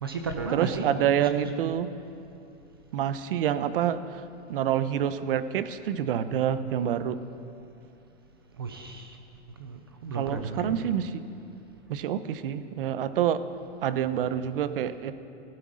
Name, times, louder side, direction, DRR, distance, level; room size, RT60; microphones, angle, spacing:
voice 1, 0.0-0.9 1.2-1.7 8.6-9.2 9.6-10.9, right 4 dB, 20° right, 6 dB, 0.3 m, -34 dB
voice 2, 0.5-1.9 2.9-4.2 4.5-7.2 10.1-11.3 11.9-13.4 13.8-15.1, right 9 dB, 50° right, 13 dB, 0.8 m, -27 dB
16.0 x 12.0 x 6.3 m, 2.7 s
supercardioid pair, 170°, 36 cm